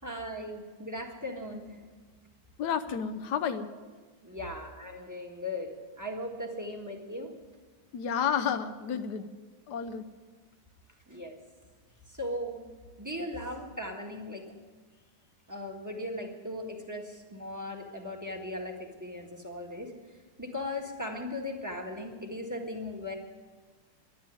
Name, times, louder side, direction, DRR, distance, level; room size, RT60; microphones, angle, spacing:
voice 1, 0.0-1.8 4.2-7.3 11.1-11.4 12.1-12.6 13.0-14.5 15.5-19.9 20.4-23.1, left 1 dB, 10° right, 1 dB, 1.4 m, -38 dB
voice 2, 2.6-3.7 7.9-9.3 9.7-10.1, left 7 dB, 65° left, 9 dB, 1.2 m, -31 dB
11.5 x 10.5 x 9.7 m, 1.4 s
omnidirectional pair, 2.2 m